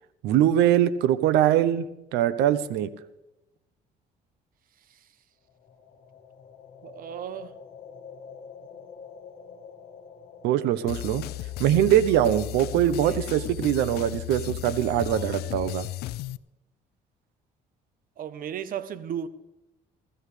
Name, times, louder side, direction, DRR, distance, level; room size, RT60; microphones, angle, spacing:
voice 1, 0.2-1.8 2.1-2.9 10.4-11.2 11.6-15.9, right 11 dB, 90° right, 0.8 m, -22 dB
sound 1, 5.5-13.5, left 6 dB, 55° left, 1.9 m, -48 dB
voice 2, 6.8-7.5 13.0-13.2 18.2-19.3, right 9 dB, 55° right, 0.9 m, -35 dB
sound 2, 10.9-16.4, left 17 dB, 70° left, 0.4 m, -35 dB
21.0 x 13.5 x 3.3 m
cardioid pair, 110°, 17 cm